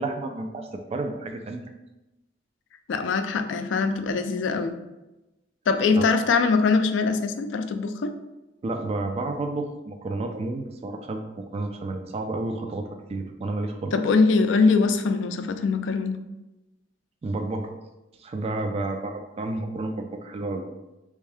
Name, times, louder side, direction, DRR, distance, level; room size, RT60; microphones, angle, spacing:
voice 1, 0.0-1.6 6.0-6.1 8.6-14.1 17.2-17.7 18.2-20.6, right 2 dB, 35° right, 5 dB, 0.3 m, -31 dB
voice 2, 2.9-4.7 5.7-8.1 13.9-16.2, left 4 dB, 70° left, 8 dB, 0.4 m, -22 dB
3.4 x 2.7 x 3.3 m, 0.99 s
head